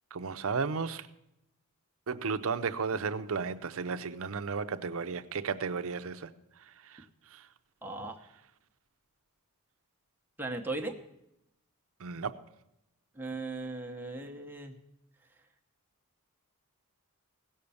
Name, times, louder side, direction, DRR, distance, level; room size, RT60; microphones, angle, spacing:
voice 1, 0.1-1.1 2.1-6.3 6.9-7.0 7.3-7.4 12.0-12.4, right 5 dB, 65° right, 0.6 m, -34 dB
voice 2, 7.8-8.2 10.4-11.0 13.2-14.7, right 2 dB, 10° right, 1.0 m, -37 dB
16.5 x 6.6 x 6.9 m
head